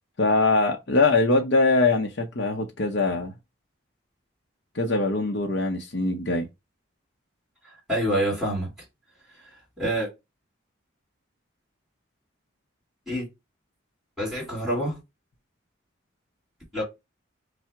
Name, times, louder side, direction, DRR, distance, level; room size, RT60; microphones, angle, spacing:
voice 1, 0.2-3.3 4.7-6.5, left 3 dB, 60° left, 0.6 m, -22 dB
voice 2, 7.6-8.7 9.4-9.5 9.8-10.1 13.1-13.3 14.2-15.0 16.7-16.8, right 1 dB, ahead, 2.5 m, -27 dB
5.6 x 2.0 x 3.3 m
head